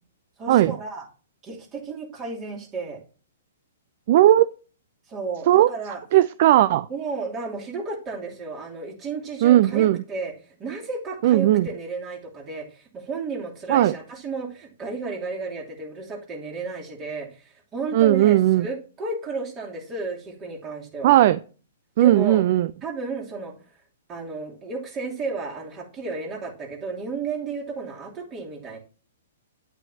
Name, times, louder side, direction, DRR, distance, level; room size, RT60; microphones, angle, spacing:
voice 1, 0.4-1.0 1.4-3.0 5.1-6.0 6.9-10.3 10.6-21.2 22.0-22.4 22.8-23.5 24.1-28.8, right 4 dB, 25° right, 0 dB, 3.0 m, -33 dB
voice 2, 4.1-4.5 5.5-5.7 6.1-6.9 9.4-10.0 11.2-11.7 13.7-13.9 17.9-18.7 21.0-21.4 22.0-22.7, right 13 dB, 50° right, 16 dB, 0.4 m, -17 dB
9.1 x 8.8 x 2.8 m, 0.37 s
figure-of-eight pair, 115°, 0 cm